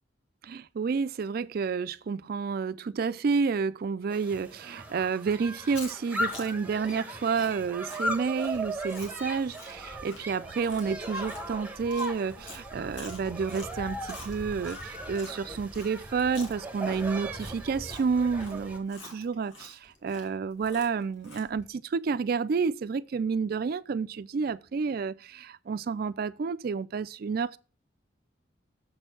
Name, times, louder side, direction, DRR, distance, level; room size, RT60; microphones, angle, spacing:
voice 1, 0.4-27.6, right 5 dB, 50° right, 0.3 m, -30 dB
sound 1, 4.1-18.8, right 1 dB, 10° right, 1.1 m, -38 dB
Chewing mastication, 5.5-15.4 15.7-21.6, left 2 dB, 75° left, 2.1 m, -47 dB
7.1 x 4.4 x 6.1 m
head